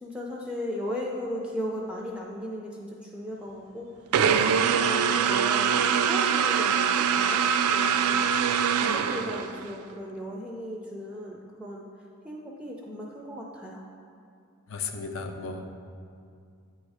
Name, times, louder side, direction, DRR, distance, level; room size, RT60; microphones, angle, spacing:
voice 1, 0.0-3.9 4.3-7.4 7.7-8.2 8.7-11.8 12.2-13.9, equal, 5° right, -2 dB, 0.4 m, -36 dB
sound 1, 4.1-9.7, right 7 dB, 85° right, 0.3 m, -23 dB
voice 2, 14.7-15.7, left 4 dB, 65° left, 5 dB, 0.5 m, -34 dB
8.5 x 3.1 x 4.8 m, 2.4 s
head